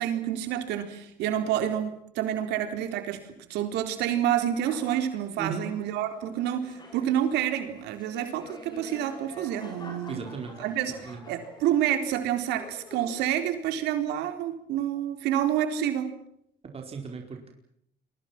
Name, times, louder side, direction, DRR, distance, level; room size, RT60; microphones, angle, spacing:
voice 1, 0.0-16.1, right 10 dB, 90° right, 8 dB, 4.0 m, -28 dB
sound 1, 4.6-5.2 6.1-12.0 12.3-13.4, left 1 dB, 25° left, 6.2 m, -48 dB
voice 2, 10.1-10.5 11.1-11.2 16.7-17.5, right 5 dB, 35° right, 2 dB, 4.8 m, -36 dB
29.5 x 23.5 x 6.1 m, 0.70 s
cardioid pair, 110°, 17 cm